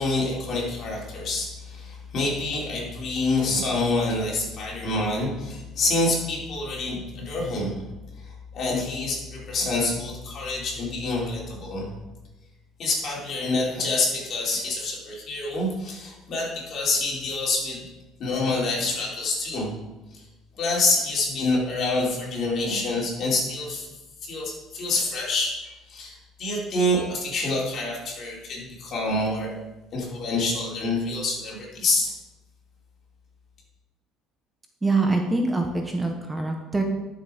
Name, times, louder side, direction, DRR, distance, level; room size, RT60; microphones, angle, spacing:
voice 1, 0.0-7.8 8.5-11.9 12.8-17.8 18.2-19.7 20.1-20.2 20.5-23.9 24.2-29.5 29.9-32.1, left 2 dB, 50° left, -3 dB, 4.6 m, -27 dB
voice 2, 34.8-36.8, right 3 dB, 15° right, 3 dB, 1.3 m, -24 dB
12.0 x 7.4 x 5.2 m, 1.1 s
cardioid pair, 115°, 0 cm